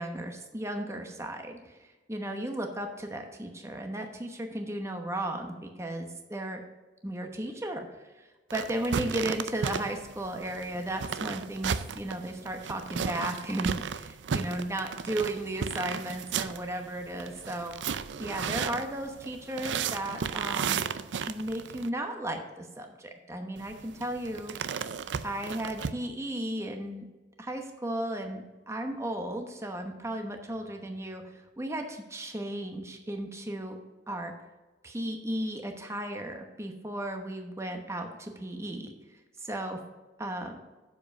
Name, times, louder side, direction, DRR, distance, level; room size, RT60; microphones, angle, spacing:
voice 1, 0.0-6.6 7.0-7.9 8.2-17.7 18.2-20.9 21.3-24.5 25.2-27.1 27.4-33.8 34.1-34.3 34.8-39.8 40.2-40.6, right 1 dB, 15° right, 4 dB, 1.0 m, -35 dB
sound 1, 8.5-21.9 23.6-25.9, right 6 dB, 85° right, 0.5 m, -34 dB
7.7 x 7.1 x 5.3 m, 1.2 s
head